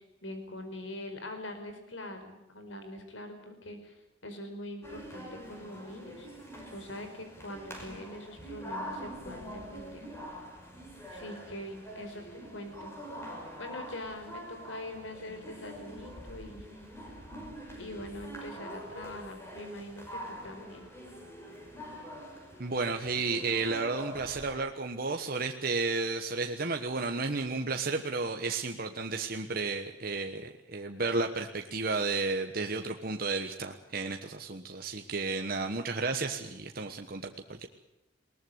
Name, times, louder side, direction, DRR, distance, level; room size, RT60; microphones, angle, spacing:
voice 1, 0.0-4.0 4.2-6.3 6.7-10.1 11.1-12.9 13.6-16.7 17.7-20.9, left 1 dB, 85° left, 7 dB, 4.9 m, -43 dB
sound 1, 4.8-24.5, equal, 15° left, 5.4 m, -45 dB
voice 2, 22.6-37.3, right 3 dB, 50° right, 4 dB, 1.2 m, -32 dB
21.5 x 19.5 x 8.0 m, 0.96 s
head